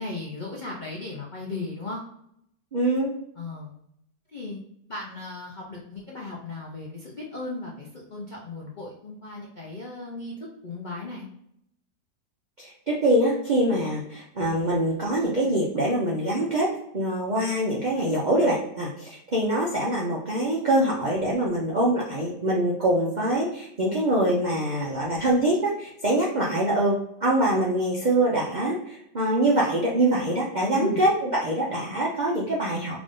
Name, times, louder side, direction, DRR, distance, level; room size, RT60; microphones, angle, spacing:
voice 1, 0.0-2.0 3.4-3.7 4.3-4.6 4.9-11.3 30.7-31.0, left 2 dB, 60° left, -3 dB, 0.4 m, -36 dB
voice 2, 2.7-3.1 12.6-33.0, right 1 dB, 60° right, -4 dB, 0.4 m, -24 dB
3.6 x 2.5 x 3.6 m, 0.75 s
omnidirectional pair, 1.7 m